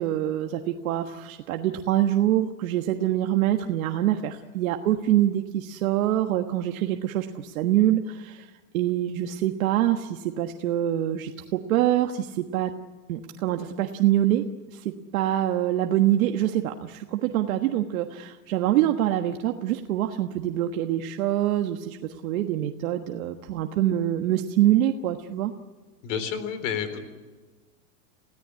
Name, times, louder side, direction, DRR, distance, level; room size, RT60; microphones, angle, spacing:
voice 1, 0.0-12.7 13.1-25.5, right 12 dB, 60° right, 4 dB, 1.5 m, -25 dB
voice 2, 26.0-27.1, left 7 dB, 50° left, 10 dB, 3.9 m, -30 dB
29.5 x 17.0 x 9.5 m, 1.3 s
supercardioid pair, 175°, 46 cm